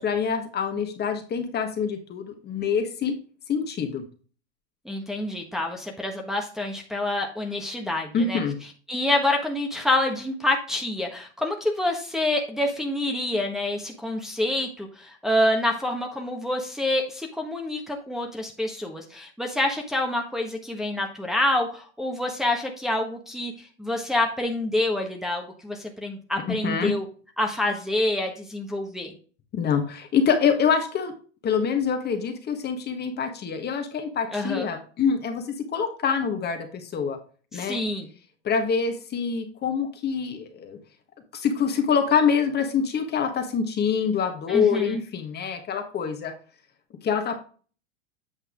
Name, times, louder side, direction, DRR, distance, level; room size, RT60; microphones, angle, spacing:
voice 1, 0.0-3.2 3.5-4.0 8.1-8.6 26.5-26.9 29.5-31.1 31.4-37.2 37.5-37.8 38.4-40.8 41.4-46.3 47.0-47.4, left 6 dB, 30° left, 6 dB, 1.5 m, -25 dB
voice 2, 4.8-8.4 8.9-27.0 27.4-29.1 34.3-34.7 37.5-38.1 44.5-45.0, left 1 dB, ahead, 1 dB, 1.4 m, -27 dB
8.5 x 5.3 x 3.7 m, 0.39 s
hypercardioid pair, 105°, 35 cm